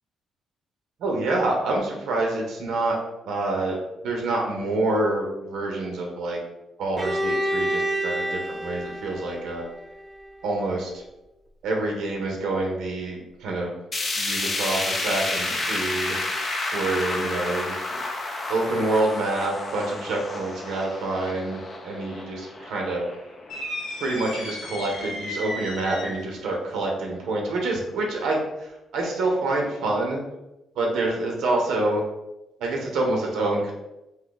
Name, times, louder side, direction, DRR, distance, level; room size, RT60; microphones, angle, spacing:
voice 1, 1.0-3.0 3.3-3.8 4.0-6.4 6.8-9.7 10.4-11.0 11.6-13.8 14.1-16.2 16.7-18.0 18.5-23.0 24.0-30.2 30.8-32.0 32.6-33.7, right 2 dB, 80° right, 0 dB, 0.6 m, -27 dB
Bowed string instrument, 7.0-10.8, right 1 dB, 20° right, 0.5 m, -29 dB
sound 1, 13.9-24.1 24.5-24.6 25.0-25.1 25.9-26.0, left 2 dB, 35° left, 0.5 m, -30 dB
sound 2, 23.5-26.4, left 1 dB, 90° left, 0.7 m, -34 dB
2.7 x 2.3 x 3.8 m, 0.94 s
cardioid pair, 90°, 0 cm